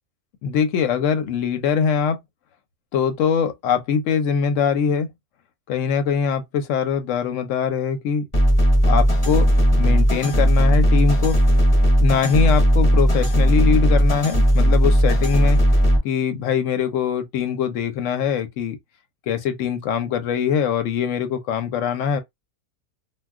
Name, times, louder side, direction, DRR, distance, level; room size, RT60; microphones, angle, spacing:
voice 1, 0.4-2.2 2.9-5.1 5.7-8.2 8.8-9.5 9.8-11.4 12.0-15.6 16.0-18.8 19.3-22.2, left 7 dB, 65° left, 0.9 m, -22 dB
sound 1, 8.3-16.0, equal, 25° left, 0.7 m, -17 dB
2.3 x 2.2 x 3.5 m
omnidirectional pair, 1.5 m